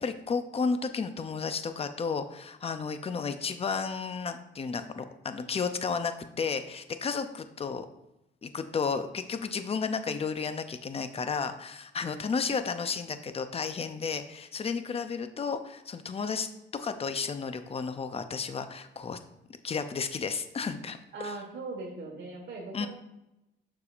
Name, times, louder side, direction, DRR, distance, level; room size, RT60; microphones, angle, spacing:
voice 1, 0.0-7.9 8.4-19.2 19.6-21.0 21.2-21.4 22.7-22.9, left 5 dB, 30° left, 9 dB, 0.6 m, -32 dB
voice 2, 21.1-22.9, right 3 dB, 60° right, -1 dB, 1.6 m, -39 dB
6.8 x 6.8 x 2.5 m, 0.89 s
cardioid pair, 90°, 20 cm